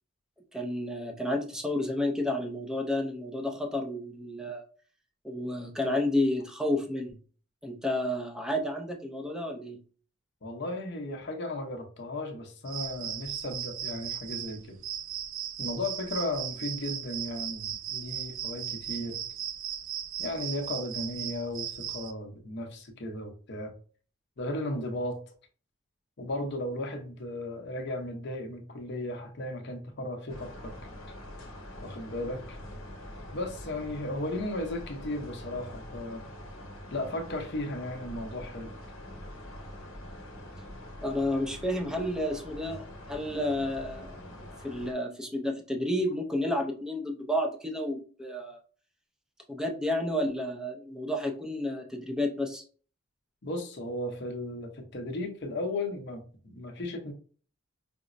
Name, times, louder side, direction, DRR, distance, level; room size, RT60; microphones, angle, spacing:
voice 1, 0.5-4.7 5.2-7.2 7.6-9.8 41.0-48.6 49.5-52.6, left 1 dB, 5° right, 3 dB, 0.5 m, -31 dB
voice 2, 10.4-14.8 15.6-19.2 20.2-23.7 24.4-25.2 26.2-30.7 31.8-32.6 33.3-36.2 36.9-38.7 53.4-57.1, left 1 dB, 55° left, 4 dB, 0.7 m, -35 dB
sound 1, 12.7-22.1, right 10 dB, 65° right, 0.4 m, -37 dB
sound 2, 30.3-44.9, left 1 dB, 80° left, 0.9 m, -44 dB
5.0 x 2.0 x 2.5 m, 0.41 s
head